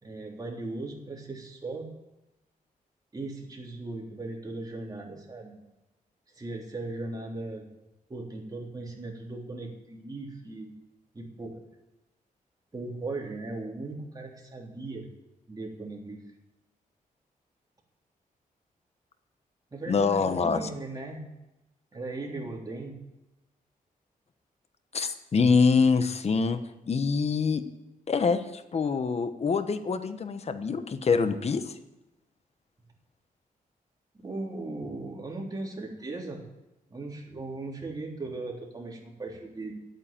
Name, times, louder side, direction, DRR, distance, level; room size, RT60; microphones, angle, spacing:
voice 1, 0.0-1.9 3.1-5.6 6.4-7.7 8.1-10.7 11.1-11.6 12.7-15.1 15.5-16.2 19.7-21.3 21.9-23.0 34.2-36.5 36.9-39.9, right 2 dB, 25° right, -1 dB, 3.6 m, -38 dB
voice 2, 19.9-20.6 24.9-26.6 26.9-27.6 28.1-31.7, left 5 dB, 45° left, 10 dB, 1.1 m, -25 dB
12.0 x 9.0 x 8.8 m, 0.94 s
cardioid pair, 95°, 15 cm